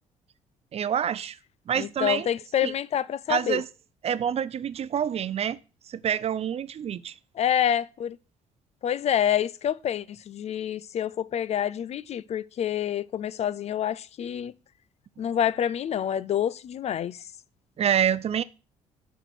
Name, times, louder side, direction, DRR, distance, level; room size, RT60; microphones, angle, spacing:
voice 1, 0.7-1.4 1.7-2.3 2.6-2.7 3.3-3.7 4.0-5.6 5.9-7.1 17.8-18.4, right 9 dB, 45° right, 0.5 m, -27 dB
voice 2, 1.8-3.6 7.4-8.2 8.8-14.5 15.2-17.2, left 9 dB, 50° left, 0.4 m, -27 dB
6.6 x 4.5 x 6.3 m
supercardioid pair, 70°, 14 cm